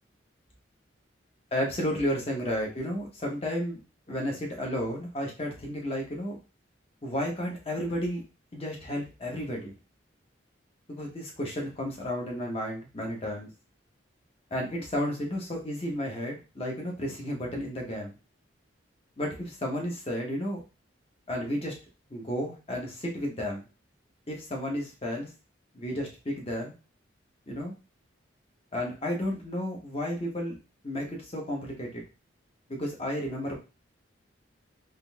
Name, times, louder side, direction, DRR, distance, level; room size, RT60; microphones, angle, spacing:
voice 1, 1.5-3.8 4.1-6.4 7.0-8.2 8.5-9.7 10.9-13.5 14.5-18.1 19.2-20.6 21.3-21.7 22.1-23.6 24.3-25.3 25.7-26.7 27.5-27.7 28.7-30.6 30.8-32.0 32.7-33.6, equal, 30° left, 0 dB, 0.9 m, -32 dB
3.7 x 2.5 x 2.3 m, 0.31 s
head